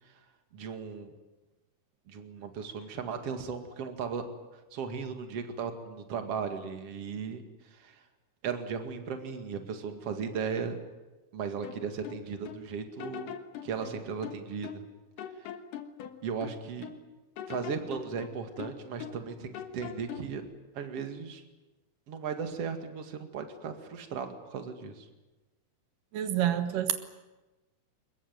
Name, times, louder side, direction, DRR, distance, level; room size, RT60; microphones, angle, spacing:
voice 1, 0.5-1.1 2.1-4.2 4.7-8.0 8.4-10.8 11.3-13.3 13.6-14.8 15.4-15.5 16.2-16.9 17.5-20.4 20.7-21.4 22.1-25.1, right 6 dB, 50° right, 6 dB, 2.9 m, -36 dB
sound 1, 11.6-12.6 13.0-14.9 15.2-17.0 17.4-19.3 19.5-20.4, left 8 dB, 85° left, 3.0 m, -42 dB
voice 2, 26.1-27.0, right 11 dB, 85° right, 8 dB, 3.0 m, -28 dB
24.0 x 21.5 x 9.3 m, 1.1 s
omnidirectional pair, 3.7 m